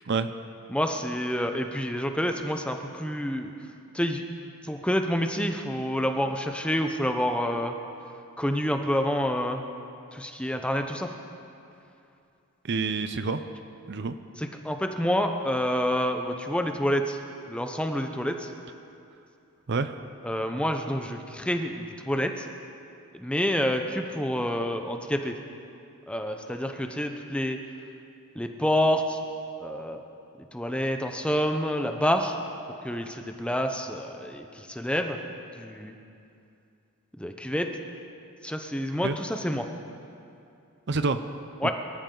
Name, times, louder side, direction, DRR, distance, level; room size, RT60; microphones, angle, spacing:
voice 1, 0.7-3.5 3.9-4.2 4.7-7.7 8.4-9.6 10.1-11.1 14.4-17.2 17.5-18.5 20.2-22.3 23.1-25.3 26.1-27.6 28.4-29.2 29.6-30.0 30.5-32.4 32.8-35.2 35.6-35.9 37.2-37.7 38.4-39.7 41.6-41.7, equal, 5° left, 5 dB, 0.8 m, -28 dB
voice 2, 12.6-13.4 13.9-14.2 19.7-20.0 39.0-39.2 40.9-41.2 41.6-41.7, right 4 dB, 50° right, 10 dB, 0.6 m, -27 dB
24.5 x 13.5 x 3.9 m, 2.6 s
head